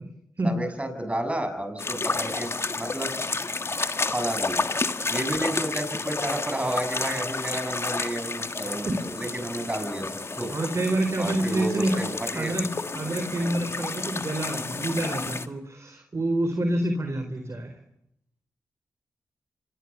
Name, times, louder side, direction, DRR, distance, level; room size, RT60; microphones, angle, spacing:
voice 1, 0.4-2.5 2.8-3.1 4.1-4.7 5.1-10.5 11.2-12.6 13.4-13.6, right 1 dB, 20° right, 8 dB, 7.0 m, -31 dB
sound 1, 1.8-15.5, left 3 dB, 40° left, 1.8 m, -31 dB
voice 2, 10.5-12.0 12.3-17.8, right 1 dB, 45° right, 7 dB, 4.2 m, -27 dB
27.0 x 20.0 x 7.1 m, 0.76 s
cardioid pair, 50°, 6 cm